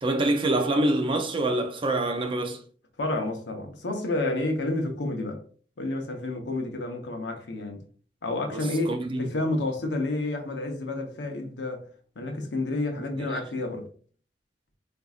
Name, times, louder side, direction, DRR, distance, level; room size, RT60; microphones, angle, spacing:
voice 1, 0.0-2.6 8.5-9.3 13.2-13.4, right 2 dB, 30° right, 0.4 m, -26 dB
voice 2, 3.0-5.4 5.8-7.8 8.2-11.9 12.2-13.9, left 2 dB, 85° left, 0.8 m, -30 dB
4.4 x 2.6 x 2.3 m
head